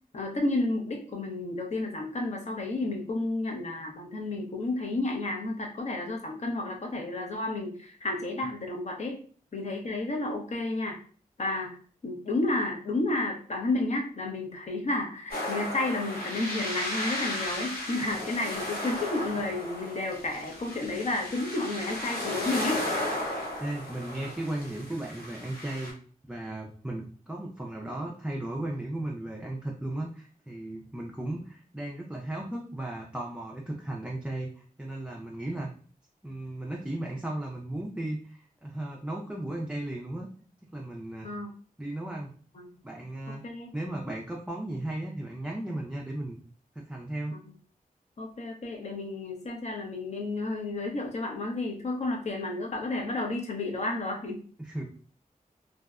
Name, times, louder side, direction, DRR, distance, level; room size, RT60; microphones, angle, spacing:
voice 1, 0.1-9.2 9.5-11.0 11.4-11.7 12.0-22.8 41.2-41.5 42.6-42.7 43.3-43.7 48.2-54.4, left 2 dB, 50° left, 1 dB, 0.6 m, -31 dB
sound 1, 15.3-25.9, left 1 dB, 85° left, 0.7 m, -35 dB
voice 2, 23.6-25.9 26.3-35.7 36.2-40.3 40.7-41.3 41.8-42.3 42.8-43.4 43.7-46.4 46.8-47.4 54.6-54.8, right 1 dB, 5° right, -2 dB, 0.3 m, -35 dB
2.6 x 2.1 x 2.3 m, 0.43 s
wide cardioid pair, 90°, 15 cm